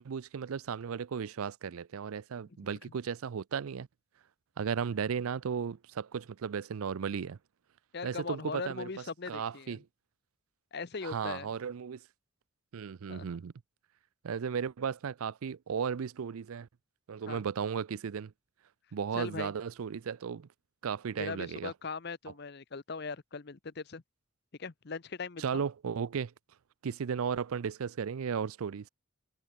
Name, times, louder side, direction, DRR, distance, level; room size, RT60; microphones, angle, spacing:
voice 1, 0.0-3.9 4.6-7.4 8.0-8.9 9.3-9.8 11.0-12.0 12.7-13.5 14.2-16.7 17.1-18.3 18.9-20.5 20.8-21.7 25.4-26.3 26.8-28.9, right 6 dB, 80° right, 0.4 m, -35 dB
voice 2, 7.9-9.8 10.7-11.5 13.1-13.4 17.3-17.4 19.1-19.5 21.1-24.0 24.6-25.6, left 4 dB, 50° left, 0.7 m, -40 dB
head